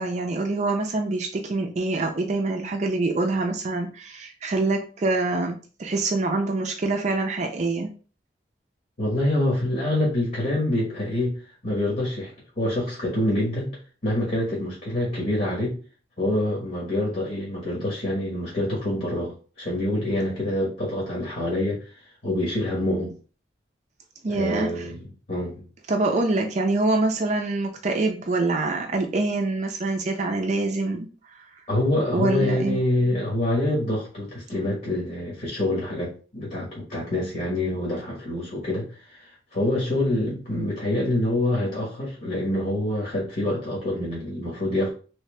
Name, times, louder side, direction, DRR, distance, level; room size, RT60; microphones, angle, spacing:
voice 1, 0.0-7.9 24.2-24.8 25.9-31.1 32.1-32.8, right 2 dB, 40° right, 3 dB, 0.4 m, -25 dB
voice 2, 9.0-11.4 11.6-12.3 12.6-13.8 14.0-15.8 16.2-21.8 22.2-23.1 24.3-25.6 31.7-44.9, left 1 dB, 50° left, -4 dB, 1.2 m, -26 dB
3.2 x 2.7 x 3.2 m, 0.38 s
head